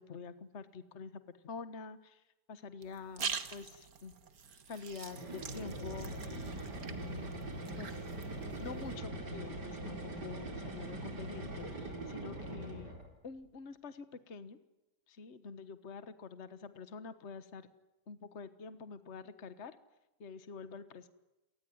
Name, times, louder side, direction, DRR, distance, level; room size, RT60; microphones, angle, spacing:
voice 1, 0.0-2.2 2.5-4.1 4.7-8.0 8.6-13.0 13.2-14.6 15.1-17.7 18.1-19.8 20.2-21.1, left 5 dB, 45° left, 12 dB, 1.6 m, -47 dB
sound 1, 2.8-8.9, right 6 dB, 60° right, 2.0 m, -45 dB
sound 2, 5.1-13.1, right 2 dB, 80° right, 5.0 m, -42 dB
28.0 x 20.0 x 9.4 m, 0.99 s
omnidirectional pair, 1.8 m